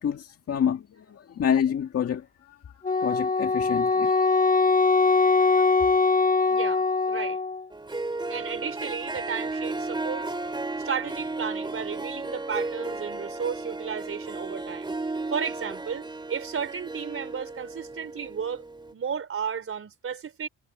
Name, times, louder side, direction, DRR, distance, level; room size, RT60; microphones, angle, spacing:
voice 1, 0.0-2.2 3.0-4.2 5.4-5.6, left 8 dB, 55° left, 2.0 m, -28 dB
Wind instrument woodwind instrument, 2.8-7.6, left 4 dB, 25° left, 1.4 m, -22 dB
voice 2, 5.2-5.6 6.5-7.4 8.3-14.9 15.3-18.6 18.9-20.5, right 7 dB, 45° right, 4.5 m, -34 dB
Harp, 7.7-18.9, right 2 dB, 15° right, 2.9 m, -34 dB
cardioid pair, 90°, 30 cm